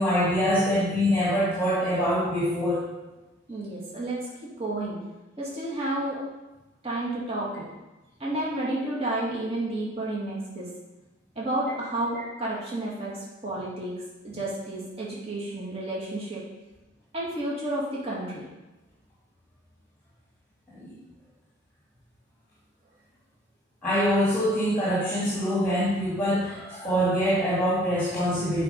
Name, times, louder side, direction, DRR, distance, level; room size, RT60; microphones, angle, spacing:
voice 1, 0.0-2.8 20.7-21.0 23.8-28.6, equal, 10° left, -8 dB, 2.4 m, -24 dB
voice 2, 3.5-5.0 5.4-6.2 6.8-7.7 8.2-10.7 11.4-14.0 14.2-16.4 17.1-18.4, right 1 dB, 30° right, -6 dB, 2.0 m, -31 dB
8.3 x 5.7 x 5.2 m, 1.1 s
head